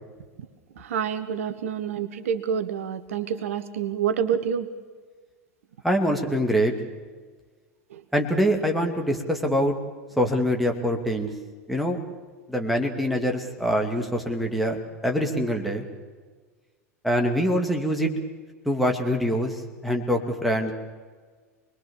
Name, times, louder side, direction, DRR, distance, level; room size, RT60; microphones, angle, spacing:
voice 1, 0.8-4.7 7.9-8.0, right 8 dB, 60° right, 11 dB, 1.1 m, -28 dB
voice 2, 5.8-6.7 8.1-9.8 10.2-11.3 11.7-12.0 12.5-15.9 17.0-18.1 18.6-20.7, equal, ahead, 2 dB, 2.6 m, -24 dB
26.0 x 21.0 x 7.2 m, 1.5 s
figure-of-eight pair, 85°, 9 cm